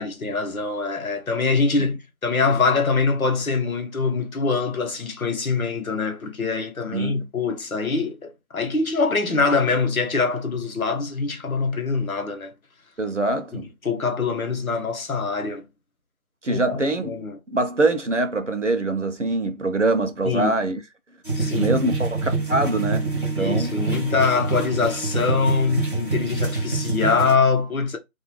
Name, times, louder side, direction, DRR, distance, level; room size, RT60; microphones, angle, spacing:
voice 1, 0.0-12.5 13.5-15.7 16.5-17.4 20.2-20.5 21.4-21.7 23.4-28.0, left 4 dB, 70° left, 0.8 m, -24 dB
voice 2, 6.9-7.3 13.0-13.7 16.4-17.1 17.5-20.8 21.5-23.1 23.4-23.8, right 2 dB, 60° right, 0.5 m, -24 dB
sound 1, 21.3-27.4, right 3 dB, 35° left, 0.8 m, -26 dB
2.3 x 2.1 x 3.0 m
figure-of-eight pair, 180°, 44 cm